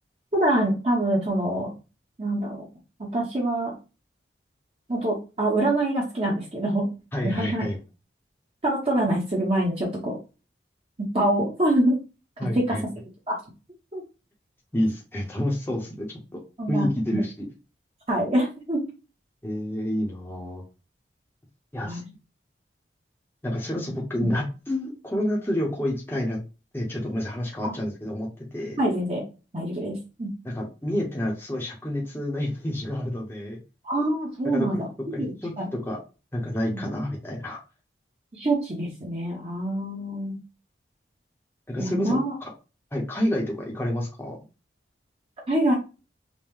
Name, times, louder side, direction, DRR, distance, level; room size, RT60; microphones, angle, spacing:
voice 1, 0.3-1.7 2.2-2.6 3.0-3.7 4.9-6.9 7.2-7.6 8.6-10.2 11.1-12.0 12.5-12.8 13.3-13.4 13.9-14.0 16.6-17.2 18.1-18.8 21.9-22.0 27.6-27.7 28.8-29.2 29.5-30.3 33.8-34.9 35.1-35.7 36.7-36.8 38.3-40.3 41.8-42.3 45.5-45.7, right 1 dB, 35° right, -3 dB, 0.9 m, -25 dB
voice 2, 7.1-7.8 12.4-12.8 14.7-16.4 16.7-17.5 19.4-20.6 21.7-22.0 23.4-26.4 26.7-28.8 30.4-33.6 34.4-34.7 35.1-36.0 36.3-37.6 41.7-42.5 42.9-44.4, left 1 dB, 10° left, -2 dB, 0.7 m, -29 dB
5.3 x 2.1 x 3.1 m, 0.31 s
head